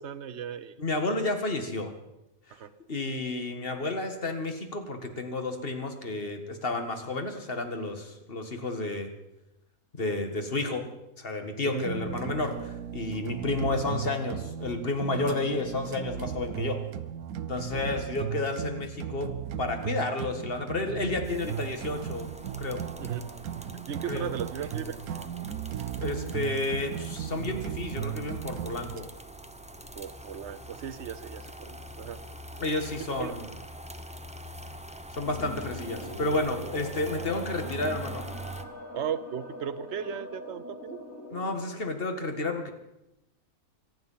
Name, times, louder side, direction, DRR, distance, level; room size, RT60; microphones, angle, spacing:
voice 1, 0.0-0.8 2.5-2.7 11.6-11.9 17.7-18.0 23.0-23.2 23.9-25.0 29.9-32.2 33.2-33.3 38.9-41.0, right 8 dB, 55° right, 14 dB, 1.0 m, -36 dB
voice 2, 0.8-1.9 2.9-9.1 10.0-10.8 11.2-16.8 17.5-22.3 22.6-22.9 24.1-24.3 26.0-29.1 32.6-33.4 35.1-38.3 41.3-42.7, left 2 dB, 40° left, 6 dB, 2.0 m, -31 dB
sound 1, 11.8-29.0, right 9 dB, 85° right, 1.2 m, -36 dB
sound 2, 21.2-38.6, right 1 dB, 5° right, 0.6 m, -44 dB
sound 3, 35.2-41.7, left 1 dB, 65° left, 3.3 m, -42 dB
25.5 x 9.5 x 5.6 m, 0.89 s
omnidirectional pair, 1.5 m